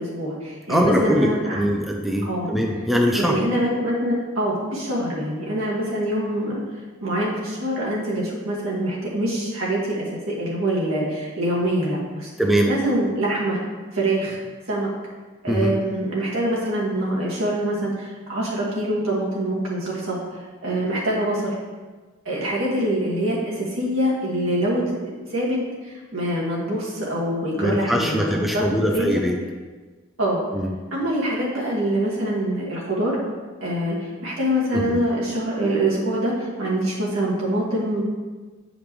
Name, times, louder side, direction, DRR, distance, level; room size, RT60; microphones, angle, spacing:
voice 1, 0.0-1.6 2.2-2.5 3.1-6.6 7.0-12.3 12.7-13.6 13.9-14.4 14.7-14.9 15.4-21.6 22.3-29.1 30.2-30.5 30.9-33.2 33.6-38.0, right 1 dB, 70° right, -5 dB, 2.1 m, -25 dB
voice 2, 0.7-3.4 12.4-12.7 15.5-15.8 27.6-29.4 30.5-30.7 34.7-35.0, equal, ahead, 0 dB, 0.5 m, -22 dB
8.5 x 5.1 x 3.2 m, 1.3 s
head